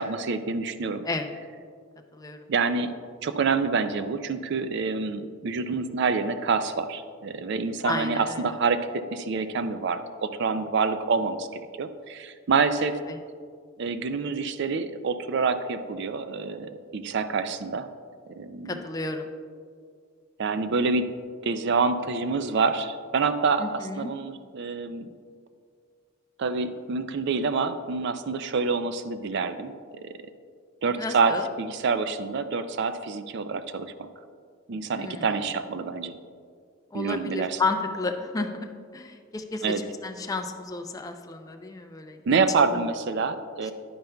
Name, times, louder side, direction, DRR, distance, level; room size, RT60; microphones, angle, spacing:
voice 1, 0.0-1.1 2.5-2.9 3.2-13.0 13.8-17.9 18.4-18.8 20.4-21.1 21.4-25.1 26.4-30.1 30.8-34.1 34.7-36.2 36.9-37.6 39.6-39.8 42.3-43.7, right 4 dB, 55° right, 11 dB, 0.4 m, -27 dB
voice 2, 7.8-8.4 13.1-13.2 18.7-19.3 23.6-24.1 31.0-31.5 34.9-35.4 36.9-42.2 42.7-42.8 43.6-43.7, left 3 dB, 15° left, 5 dB, 0.4 m, -32 dB
10.0 x 9.1 x 2.3 m, 2.1 s
head